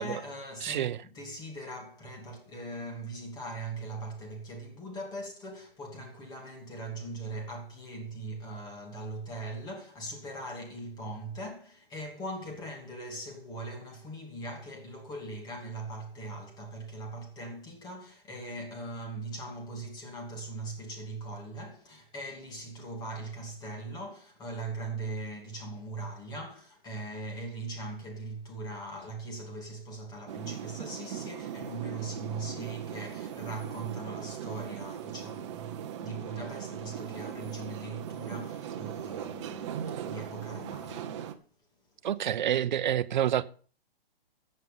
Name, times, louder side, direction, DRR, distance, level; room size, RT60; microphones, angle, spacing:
voice 1, 0.0-41.2, right 2 dB, 15° left, 2.7 m, -40 dB
voice 2, 0.6-1.0 42.0-43.4, right 10 dB, 50° right, 0.8 m, -28 dB
sound 1, 30.3-41.3, right 9 dB, 30° right, 1.1 m, -39 dB
14.5 x 8.0 x 5.5 m
hypercardioid pair, 160°, 30 cm